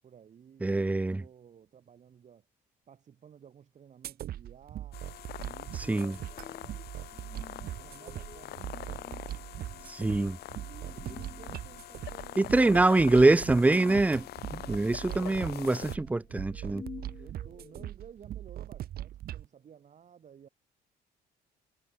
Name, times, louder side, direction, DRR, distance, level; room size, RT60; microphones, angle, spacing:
voice 1, 0.0-0.8 1.2-2.5 2.9-5.0 5.4-6.7 7.7-9.5 10.5-12.6 14.9-15.5 17.2-20.5, right 8 dB, 45° right, 4.2 m, -54 dB
voice 2, 0.6-1.2 5.9-6.1 9.9-10.4 12.4-16.8, right 2 dB, 10° right, 0.5 m, -24 dB
sound 1, 4.0-19.5, right 12 dB, 65° right, 2.8 m, -41 dB
sound 2, 4.9-16.0, left 14 dB, 70° left, 1.5 m, -45 dB
sound 3, 6.1-17.9, left 5 dB, 30° left, 4.6 m, -52 dB
cardioid pair, 110°, 17 cm